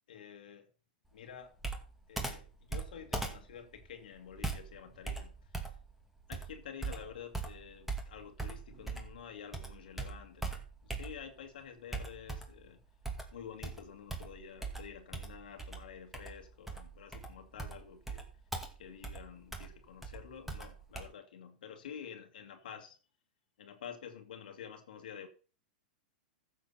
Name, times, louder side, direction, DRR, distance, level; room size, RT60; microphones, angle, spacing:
voice 1, 0.1-0.7 1.1-1.6 2.1-5.7 6.3-12.8 13.3-18.3 18.8-23.0 23.6-25.3, left 8 dB, 70° left, 2.0 m, -49 dB
Computer keyboard, 1.6-9.2 9.5-11.4 11.9-12.7 13.0-21.0, right 3 dB, 5° right, 2.3 m, -41 dB
14.5 x 6.8 x 4.1 m
hypercardioid pair, 105°, 5 cm